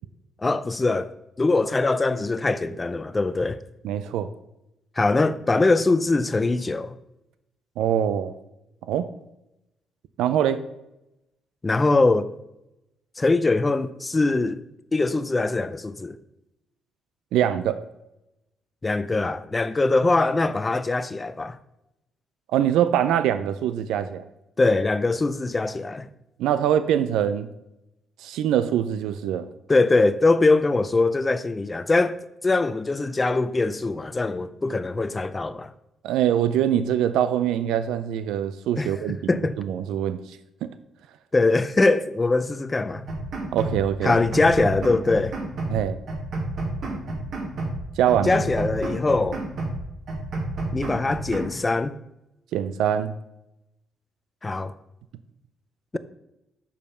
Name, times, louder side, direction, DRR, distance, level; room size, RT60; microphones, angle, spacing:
voice 1, 0.4-3.6 5.0-7.0 11.6-12.3 13.2-14.6 14.9-16.2 18.8-21.6 24.6-26.1 29.7-32.2 32.4-35.7 38.8-38.9 39.3-39.6 41.3-43.0 44.0-45.3 48.2-49.4 50.7-52.0 54.4-54.7, left 3 dB, 25° left, 0.5 m, -22 dB
voice 2, 3.8-4.3 7.8-8.3 8.9-9.1 10.2-10.6 17.3-17.8 22.5-24.2 26.4-27.5 28.2-29.5 36.0-39.2 39.6-40.2 40.6-40.7 43.5-44.2 45.7-46.0 48.0-48.4 52.5-53.2, right 10 dB, 90° right, 0.4 m, -23 dB
sound 1, 42.9-43.8 44.1-45.8 46.1-47.8 48.1-49.8 50.1-51.6, right 2 dB, 65° right, 2.2 m, -30 dB
6.7 x 5.3 x 5.5 m
cardioid pair, 90°, 0 cm